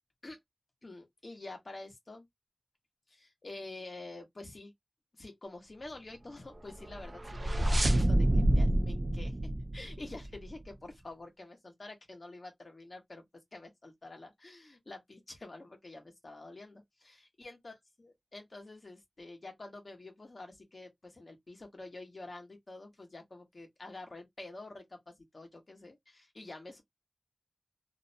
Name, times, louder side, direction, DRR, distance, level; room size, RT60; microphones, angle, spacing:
voice 1, 0.8-2.2 3.1-4.7 5.2-9.3 9.7-13.2 13.5-26.8, left 2 dB, 60° left, 0.9 m, -48 dB
sound 1, 6.8-10.5, right 1 dB, 45° right, 0.4 m, -28 dB
2.6 x 2.0 x 2.6 m
wide cardioid pair, 55°, 0 cm